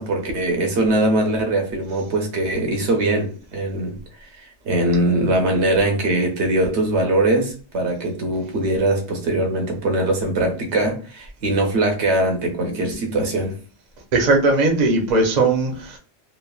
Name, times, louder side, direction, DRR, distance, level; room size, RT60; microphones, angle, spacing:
voice 1, 0.0-4.0 4.6-13.5, right 1 dB, 70° right, 3 dB, 1.0 m, -21 dB
voice 2, 14.1-16.0, right 2 dB, 45° right, 1 dB, 0.6 m, -18 dB
3.2 x 2.0 x 2.3 m, 0.37 s
omnidirectional pair, 1.2 m